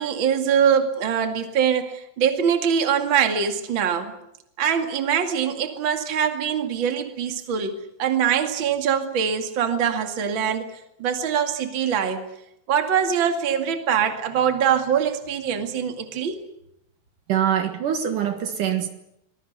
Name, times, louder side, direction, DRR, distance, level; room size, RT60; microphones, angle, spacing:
voice 1, 0.0-4.1 4.6-10.7 11.0-12.3 12.7-16.4, right 8 dB, 40° right, 2.6 m, -23 dB
voice 2, 17.3-18.9, right 9 dB, 65° right, 3.0 m, -24 dB
24.0 x 21.0 x 8.2 m
omnidirectional pair, 4.2 m